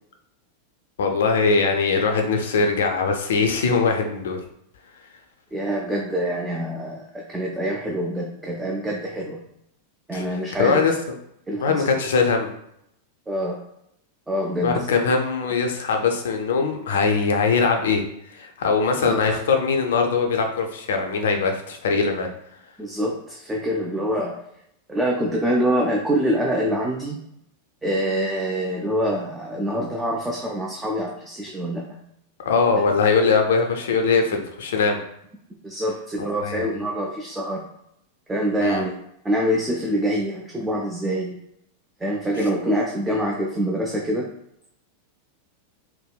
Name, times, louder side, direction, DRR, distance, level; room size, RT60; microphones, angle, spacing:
voice 1, 1.0-4.4 10.1-10.3 10.6-10.9 11.5-12.5 14.6-18.0 18.3-22.3 32.4-35.0 36.2-36.8 38.6-38.8, left 4 dB, 60° left, 4 dB, 0.5 m, -21 dB
voice 2, 5.5-9.4 10.1-10.8 11.5-11.8 13.3-13.6 14.3-14.9 19.1-19.2 22.8-24.4 24.9-27.2 27.8-32.0 35.6-37.6 38.3-39.0 39.2-41.3 42.0-44.3, equal, 10° right, -1 dB, 0.4 m, -25 dB
3.4 x 2.2 x 2.2 m, 0.76 s
figure-of-eight pair, 90°, 0 cm